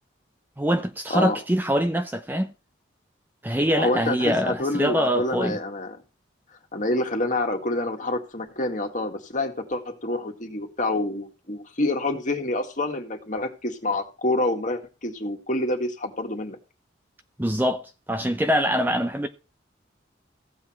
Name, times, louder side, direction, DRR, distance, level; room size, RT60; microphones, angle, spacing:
voice 1, 0.6-2.5 3.4-5.6 17.4-19.3, equal, 10° right, 0.6 m, -24 dB
voice 2, 3.8-6.0 6.7-16.6, left 2 dB, 40° left, 1.9 m, -27 dB
15.0 x 8.4 x 4.4 m
head